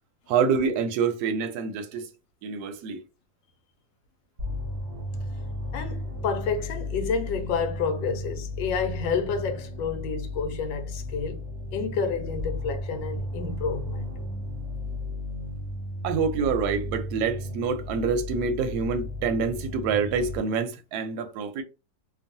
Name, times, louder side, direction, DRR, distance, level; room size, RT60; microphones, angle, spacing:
voice 1, 0.3-2.1 2.4-3.0 16.0-21.6, right 5 dB, 70° right, 1.0 m, -26 dB
sound 1, 4.4-20.4, left 1 dB, 50° right, 0.8 m, -34 dB
voice 2, 5.7-11.4 11.7-14.1, left 5 dB, 80° left, 1.3 m, -29 dB
3.0 x 2.2 x 2.6 m
omnidirectional pair, 2.1 m